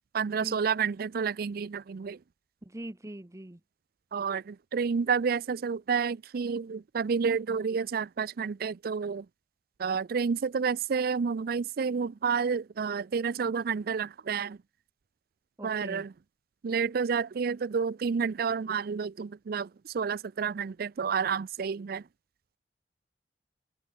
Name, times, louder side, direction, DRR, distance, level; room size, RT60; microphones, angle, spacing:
voice 1, 0.1-2.2 4.1-9.3 9.8-14.6 15.6-16.1 16.6-22.0, right 6 dB, 55° right, 0.4 m, -30 dB
voice 2, 2.6-3.6 15.6-16.1, right 1 dB, 20° right, 0.8 m, -42 dB
open air
head